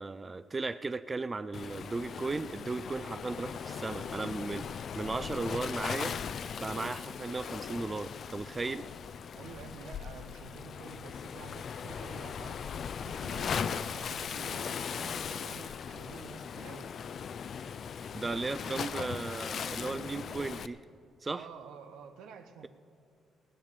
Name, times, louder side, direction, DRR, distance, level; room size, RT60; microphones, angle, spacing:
voice 1, 0.0-6.2 6.5-8.8 18.1-20.8 21.2-21.5, right 3 dB, 25° right, 13 dB, 0.4 m, -36 dB
Waves surf, 1.5-20.7, left 7 dB, 55° left, 0.4 m, -38 dB
voice 2, 9.3-12.6 13.0-16.9 21.2-22.7, right 6 dB, 85° right, 7 dB, 1.1 m, -49 dB
17.5 x 8.8 x 6.7 m, 2.4 s
cardioid pair, 90°, 0 cm